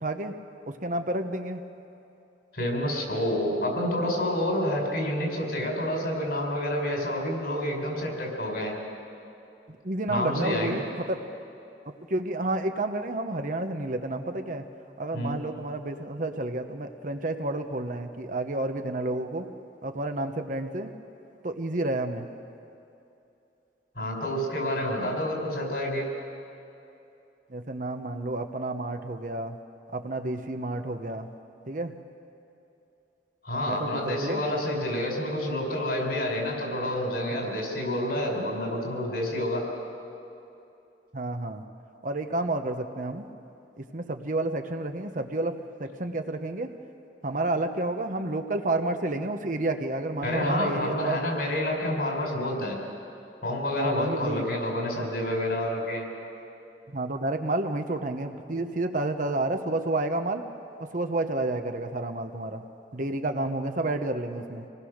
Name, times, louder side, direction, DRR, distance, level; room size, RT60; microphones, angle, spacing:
voice 1, 0.0-0.3 0.7-1.6 9.7-11.2 12.1-14.6 15.0-19.5 19.8-20.9 21.4-22.3 27.5-29.6 29.9-31.3 31.7-31.9 33.6-34.4 37.3-37.5 39.2-39.3 41.1-41.6 42.0-43.2 43.8-46.7 47.2-51.2 53.8-54.5 56.9-60.4 60.8-62.6 62.9-64.6, right 2 dB, 50° right, 6 dB, 1.1 m, -30 dB
voice 2, 2.5-8.7 10.1-10.8 15.1-15.4 17.1-17.2 23.9-26.1 33.4-39.6 50.2-52.8 53.4-56.1, left 1 dB, 65° left, 0 dB, 5.1 m, -28 dB
26.5 x 19.5 x 6.6 m, 2.8 s
head